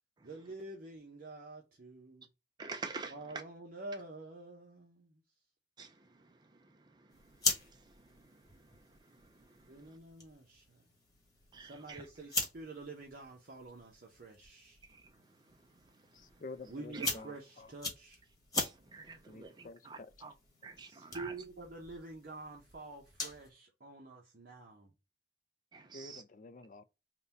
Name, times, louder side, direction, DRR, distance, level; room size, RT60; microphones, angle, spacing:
voice 1, 0.2-2.3 3.1-5.2 9.7-10.8 11.6-14.8 16.7-18.2 20.9-24.9, right 2 dB, 50° right, 0.7 m, -48 dB
voice 2, 2.6-3.4 5.8-6.3 6.6-6.7 7.0-7.1 7.6-8.4 9.1-9.9 11.5-12.0 14.9-15.0 16.9-17.1 18.5-20.3 20.6-21.3 25.7-26.2, right 4 dB, 25° right, 0.4 m, -46 dB
sound 1, 7.1-23.5, left 3 dB, 20° left, 1.2 m, -43 dB
voice 3, 16.1-17.7 19.3-19.8 25.9-26.8, left 3 dB, 45° left, 0.4 m, -49 dB
3.9 x 2.2 x 4.0 m
head